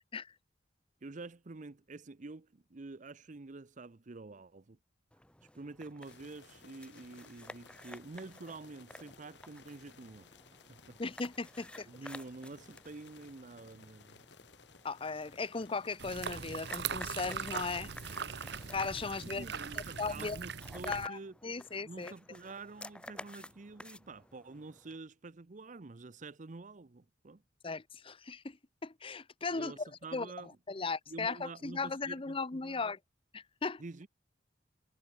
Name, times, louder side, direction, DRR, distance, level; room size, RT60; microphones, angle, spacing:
voice 1, 1.0-4.8 5.5-10.3 10.7-11.0 11.9-14.2 19.2-21.4 21.8-27.4 29.5-30.6 31.1-32.9 33.8-34.1, right 3 dB, 45° right, 0.7 m, -48 dB
sound 1, 5.1-25.0, left 1 dB, 5° left, 1.3 m, -53 dB
sound 2, 6.0-20.1, left 5 dB, 70° left, 2.2 m, -59 dB
voice 2, 11.0-11.9 14.8-17.9 18.7-19.5 19.7-20.4 20.9-22.1 27.6-28.6 28.8-30.3 30.7-33.0 33.3-33.8, left 4 dB, 30° left, 0.8 m, -37 dB
sound 3, 16.0-21.1, right 6 dB, 65° right, 1.2 m, -40 dB
head